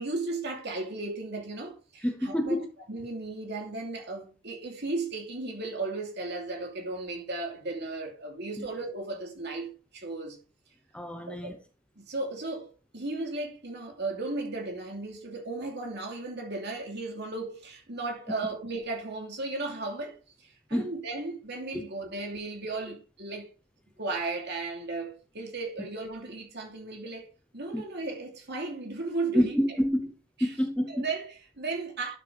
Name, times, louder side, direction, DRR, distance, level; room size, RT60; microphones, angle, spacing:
voice 1, 0.0-2.6 2.9-10.4 11.3-11.6 12.0-23.5 24.0-27.3 27.5-29.8 30.4-30.5 30.9-32.2, right 3 dB, 50° right, 3.0 m, -35 dB
voice 2, 2.0-2.6 8.6-8.7 10.9-11.5 20.7-20.9 21.7-21.8 27.7-27.8 29.3-30.1 30.4-31.0, equal, 5° left, 0.7 m, -28 dB
12.5 x 6.7 x 3.4 m
head